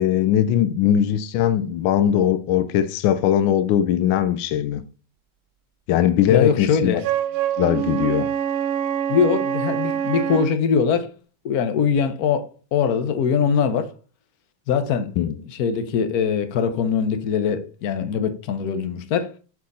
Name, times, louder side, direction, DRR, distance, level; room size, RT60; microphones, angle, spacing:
voice 1, 0.0-4.8 5.9-7.0 7.6-8.3 15.2-15.4, left 10 dB, 75° left, 1.3 m, -20 dB
voice 2, 6.3-7.0 9.1-11.1 11.4-13.9 14.7-15.2 15.6-19.3, left 6 dB, 60° left, 1.1 m, -22 dB
Wind instrument woodwind instrument, 7.0-10.5, right 9 dB, 85° right, 1.6 m, -25 dB
6.2 x 4.6 x 4.1 m
omnidirectional pair, 2.2 m